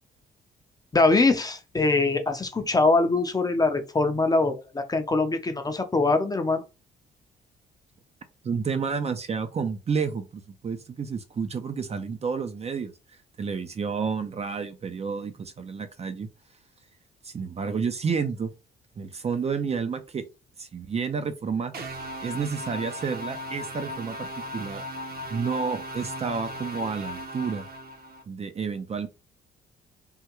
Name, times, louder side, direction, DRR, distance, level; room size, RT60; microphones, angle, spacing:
voice 1, 0.9-6.6, left 3 dB, 20° left, 0.5 m, -23 dB
voice 2, 8.4-12.9 13.4-16.3 17.2-18.5 19.0-20.2 20.6-21.7 22.2-24.8 25.3-27.6 28.3-29.1, right 5 dB, 30° right, 0.5 m, -30 dB
sound 1, 21.7-28.2, equal, 50° right, 0.9 m, -37 dB
3.5 x 2.2 x 2.9 m
cardioid pair, 90°, 20 cm